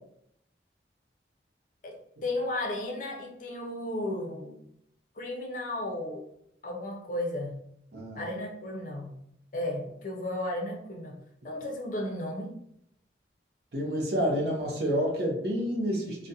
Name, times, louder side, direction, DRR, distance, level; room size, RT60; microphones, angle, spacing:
voice 1, 1.8-4.6 5.2-6.2 6.6-7.6 8.2-9.2 9.5-11.2 11.4-12.6, left 1 dB, 45° left, 1 dB, 0.4 m, -34 dB
voice 2, 7.9-8.3 13.7-16.3, equal, 60° right, 0 dB, 0.6 m, -29 dB
2.4 x 2.1 x 2.7 m, 0.73 s
head